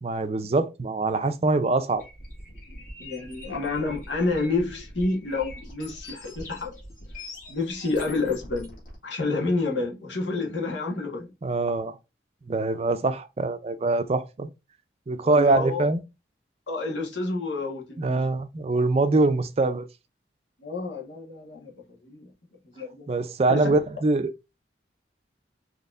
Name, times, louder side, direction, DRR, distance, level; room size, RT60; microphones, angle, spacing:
voice 1, 0.0-2.0 11.4-11.9 12.5-14.5 15.1-16.0 18.0-19.8 23.1-24.3, right 3 dB, 35° right, 0.4 m, -23 dB
sound 1, 2.0-9.0, left 1 dB, 45° left, 1.7 m, -43 dB
voice 2, 3.0-6.7 7.5-8.7 9.0-11.3 15.2-15.9 16.7-18.3 20.6-22.3 22.7-23.1 23.5-23.7, left 3 dB, 90° left, 1.3 m, -29 dB
4.1 x 3.0 x 2.4 m
head